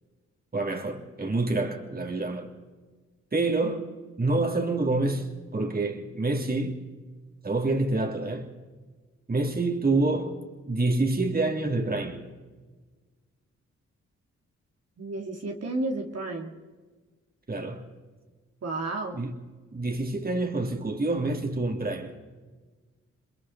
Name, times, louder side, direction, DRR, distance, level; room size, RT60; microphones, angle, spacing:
voice 1, 0.5-2.5 3.3-3.9 4.2-6.8 7.4-8.5 9.3-10.4 10.7-12.2 17.5-17.9 19.1-19.3 19.7-22.1, right 2 dB, 30° right, 3.1 m, -27 dB
voice 2, 15.0-16.5 18.6-19.2, right 2 dB, 60° right, 2.8 m, -32 dB
29.0 x 21.5 x 4.2 m
cardioid pair, 65°, 29 cm